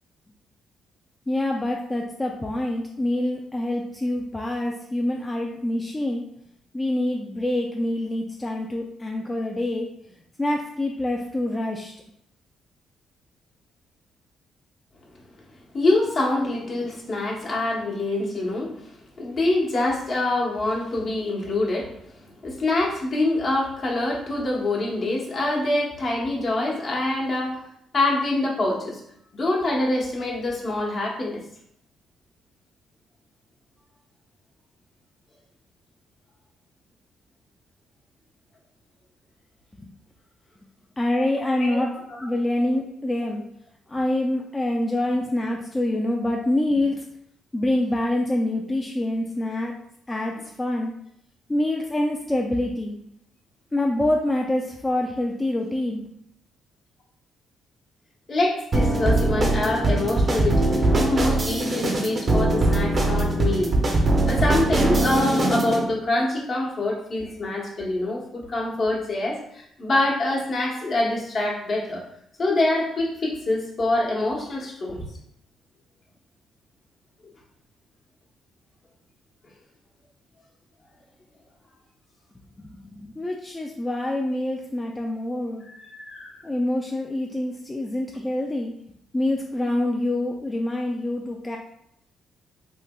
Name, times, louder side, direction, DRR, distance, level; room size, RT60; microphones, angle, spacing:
voice 1, 1.3-6.2 6.7-9.9 10.4-11.9 39.8-39.9 41.0-41.9 42.2-43.4 43.9-47.0 47.5-49.7 50.1-50.9 51.5-53.0 53.7-56.1 82.6-85.7 86.4-88.7 89.1-91.6, left 1 dB, 15° left, -1 dB, 0.3 m, -26 dB
voice 2, 15.7-22.0 22.4-27.6 27.9-29.0 29.3-31.4 41.5-42.3 58.3-63.8 64.3-72.0 72.4-75.0 85.7-86.4, left 2 dB, 50° left, -3 dB, 0.9 m, -25 dB
sound 1, 58.7-65.8, right 2 dB, 35° right, 0.5 m, -21 dB
3.2 x 2.8 x 2.2 m, 0.72 s
cardioid pair, 90°, 0 cm